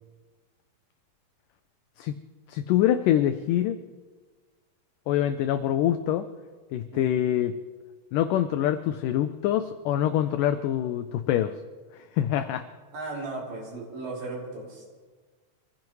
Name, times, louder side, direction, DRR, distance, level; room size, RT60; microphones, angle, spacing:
voice 1, 2.5-3.8 5.1-6.3 6.7-7.5 8.1-11.5 12.2-12.6, left 11 dB, 85° left, 10 dB, 1.9 m, -25 dB
voice 2, 6.9-7.2 12.9-14.9, right 3 dB, 80° right, -3 dB, 5.0 m, -36 dB
25.5 x 15.5 x 3.1 m, 1.4 s
omnidirectional pair, 4.4 m